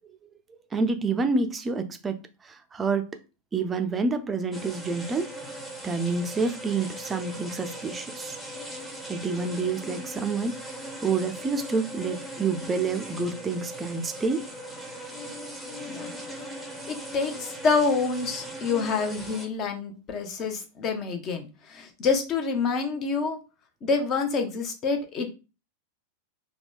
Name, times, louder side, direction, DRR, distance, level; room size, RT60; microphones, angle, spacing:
voice 1, 0.7-3.1 3.5-5.3 5.8-8.3 9.1-10.6 11.0-14.4, right 4 dB, 15° right, 0.5 m, -28 dB
sound 1, 4.5-19.5, right 1 dB, 5° left, 0.8 m, -39 dB
voice 2, 16.9-23.4 23.8-25.3, left 4 dB, 30° left, 0.8 m, -27 dB
3.6 x 2.2 x 3.6 m
figure-of-eight pair, 90°, 0 cm